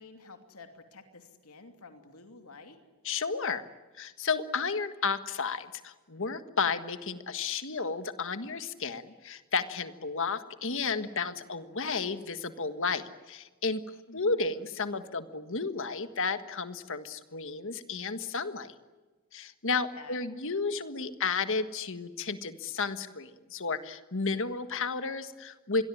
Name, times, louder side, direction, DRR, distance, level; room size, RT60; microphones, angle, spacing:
voice 1, 0.0-2.8 14.1-14.5 19.7-20.2, left 3 dB, 75° left, 6 dB, 2.9 m, -50 dB
voice 2, 3.1-3.7 4.0-13.8 14.1-18.7 19.3-25.8, left 4 dB, 60° left, 10 dB, 1.6 m, -32 dB
26.5 x 22.5 x 10.0 m, 1.2 s
head